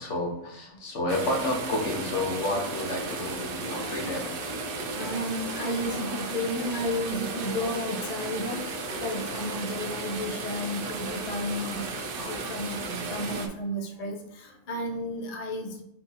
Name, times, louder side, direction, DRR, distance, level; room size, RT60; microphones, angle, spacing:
voice 1, 0.0-4.3, left 1 dB, 60° left, 0 dB, 1.3 m, -30 dB
sound 1, 1.1-13.5, right 3 dB, 55° right, 0.7 m, -34 dB
voice 2, 4.9-15.8, left 1 dB, 40° left, 1 dB, 0.5 m, -33 dB
4.3 x 2.9 x 4.1 m, 0.75 s
omnidirectional pair, 1.4 m